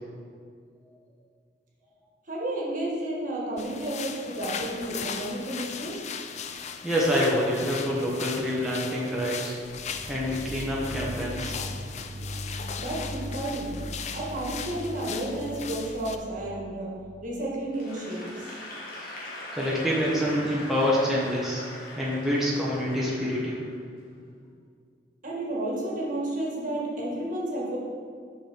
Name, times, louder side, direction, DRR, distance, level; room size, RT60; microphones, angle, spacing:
voice 1, 2.3-6.0 12.8-13.7 14.1-16.9 17.2-18.4 25.2-27.8, right 1 dB, 50° right, -3 dB, 1.6 m, -31 dB
sound 1, 3.6-16.2, left 7 dB, 40° left, 0.4 m, -38 dB
voice 2, 6.8-9.5 10.1-11.6 19.0-19.2 19.5-21.6 22.0-23.6, equal, ahead, -6 dB, 1.0 m, -26 dB
sound 2, 9.6-17.3, equal, 85° right, 0.9 m, -39 dB
Applause / Crowd, 17.7-24.0, left 1 dB, 55° left, 1.6 m, -41 dB
6.0 x 5.9 x 4.4 m, 2.2 s
head